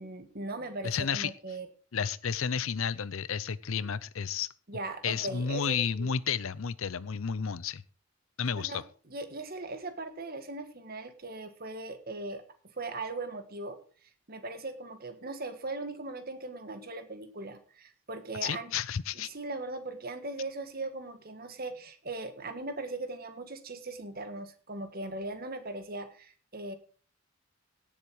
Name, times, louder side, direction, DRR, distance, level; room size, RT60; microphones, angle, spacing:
voice 1, 0.0-1.7 4.7-6.1 8.6-12.4 12.8-13.8 14.3-18.7 19.1-26.8, right 2 dB, 45° right, 9 dB, 1.7 m, -39 dB
voice 2, 0.8-1.3 1.9-4.5 5.0-7.8 8.4-8.8 18.4-19.3, left 7 dB, 75° left, 19 dB, 0.6 m, -31 dB
17.0 x 7.5 x 4.7 m, 0.41 s
head